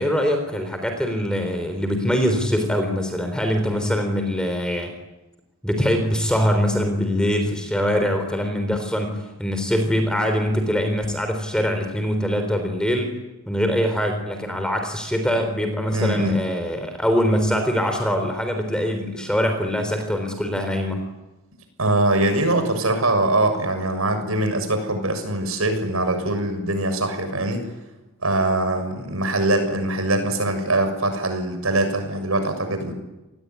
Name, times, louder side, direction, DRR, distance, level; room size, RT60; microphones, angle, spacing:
voice 1, 0.0-4.9 5.6-13.1 13.5-21.0, equal, 5° left, 5 dB, 3.7 m, -23 dB
voice 2, 15.9-16.4 21.8-27.7 28.2-32.9, right 2 dB, 80° right, 7 dB, 6.9 m, -22 dB
29.0 x 20.0 x 9.7 m, 1.0 s
head